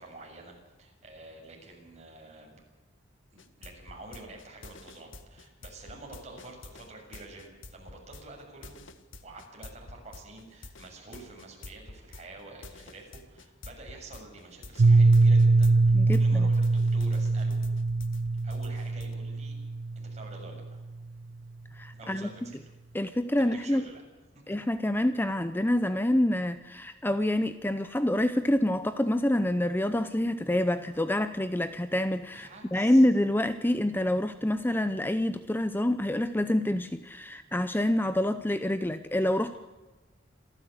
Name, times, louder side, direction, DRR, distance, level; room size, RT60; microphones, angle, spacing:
voice 1, 0.0-2.6 3.3-8.8 9.2-17.6 18.4-19.6 20.0-20.8 21.9-22.6 23.5-24.0 32.3-33.1, right 2 dB, 35° right, 0 dB, 7.1 m, -48 dB
sound 1, 3.4-16.2 16.5-19.2, left 3 dB, 90° left, 1.6 m, -48 dB
Piano, 14.8-20.4, right 3 dB, 90° right, 0.7 m, -23 dB
voice 2, 15.9-16.5 21.8-22.3 22.9-23.8 24.5-39.6, left 1 dB, 10° left, 11 dB, 0.7 m, -27 dB
27.0 x 14.0 x 8.1 m, 1.2 s
head